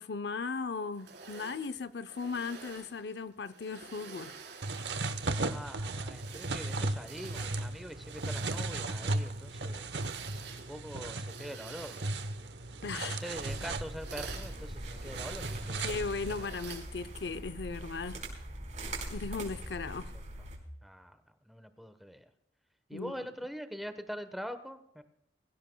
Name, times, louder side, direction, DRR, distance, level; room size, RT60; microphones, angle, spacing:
voice 1, 0.0-4.3 12.8-13.2 15.8-18.2 19.1-20.1 22.9-23.2, left 4 dB, 70° left, 0.6 m, -37 dB
sound 1, 0.9-5.5 6.0-17.5, right 5 dB, 90° right, 4.1 m, -50 dB
sound 2, 4.6-16.5, right 2 dB, 75° right, 1.0 m, -36 dB
voice 2, 5.3-9.9 10.5-12.3 13.0-15.8 20.8-22.3 22.9-25.0, equal, ahead, 1.1 m, -44 dB
sound 3, 13.4-20.6, right 1 dB, 45° right, 4.7 m, -42 dB
23.0 x 16.0 x 2.3 m
head